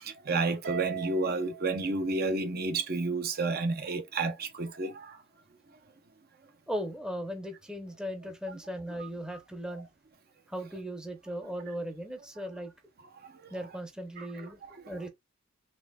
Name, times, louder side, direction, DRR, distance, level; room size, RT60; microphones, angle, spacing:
voice 1, 0.0-5.2 9.0-9.1 13.2-13.5 14.2-14.5 14.8-15.0, right 3 dB, 50° right, 0.7 m, -31 dB
Harp, 0.6-3.1, right 11 dB, 70° right, 1.9 m, -41 dB
voice 2, 6.7-9.9 10.5-12.7 13.5-15.1, equal, 5° right, 0.7 m, -38 dB
4.3 x 3.3 x 2.2 m
head